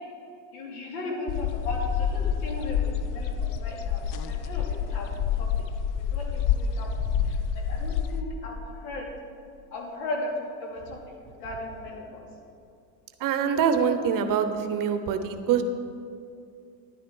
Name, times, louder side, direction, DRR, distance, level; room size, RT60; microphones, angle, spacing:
voice 1, 0.5-5.5 6.0-6.9 7.2-9.1 9.7-10.3 10.6-12.3, left 2 dB, 80° left, -1 dB, 2.7 m, -37 dB
sound 1, 1.3-8.2, left 8 dB, 45° left, 0.6 m, -28 dB
voice 2, 13.2-15.6, right 7 dB, 45° right, 8 dB, 1.0 m, -24 dB
10.5 x 9.3 x 4.6 m, 2.5 s
supercardioid pair, 105°, 46 cm